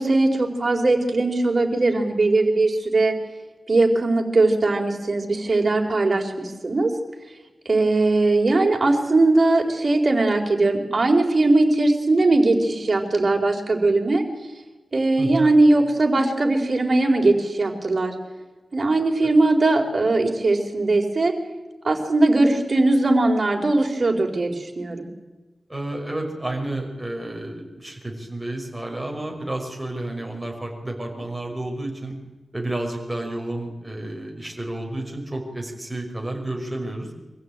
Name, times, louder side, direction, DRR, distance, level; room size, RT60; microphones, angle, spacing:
voice 1, 0.0-3.1 3.7-6.9 7.7-14.2 14.9-18.1 18.7-21.3 21.8-25.1, right 2 dB, 50° right, 2 dB, 4.3 m, -20 dB
voice 2, 25.7-32.1 32.5-37.1, right 1 dB, 10° right, 1 dB, 5.9 m, -31 dB
24.5 x 15.5 x 9.0 m, 1.2 s
wide cardioid pair, 75°, 0 cm